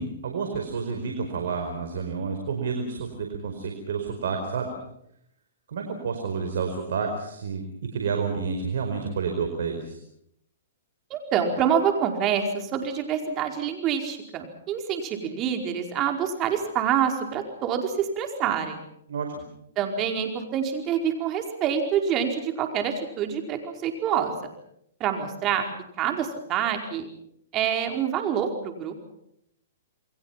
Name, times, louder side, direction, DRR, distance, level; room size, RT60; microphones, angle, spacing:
voice 1, 0.0-4.7 5.7-7.6 7.9-10.0 19.1-19.4, right 5 dB, 70° right, 4 dB, 4.9 m, -30 dB
voice 2, 11.1-18.8 19.8-24.3 25.0-25.7 26.0-27.1 27.5-28.9, right 8 dB, 30° right, 4 dB, 4.8 m, -26 dB
29.0 x 22.0 x 5.9 m, 0.75 s
hypercardioid pair, 135°, 0 cm